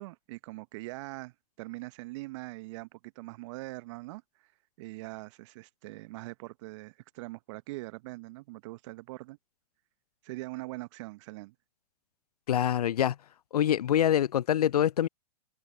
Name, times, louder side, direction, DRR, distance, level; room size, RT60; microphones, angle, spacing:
voice 1, 0.0-4.5 4.8-9.4 10.2-11.5, right 22 dB, 50° right, 0.9 m, -42 dB
voice 2, 12.5-13.2 13.5-15.1, left 10 dB, 75° left, 0.5 m, -25 dB
figure-of-eight pair, 105°, 20 cm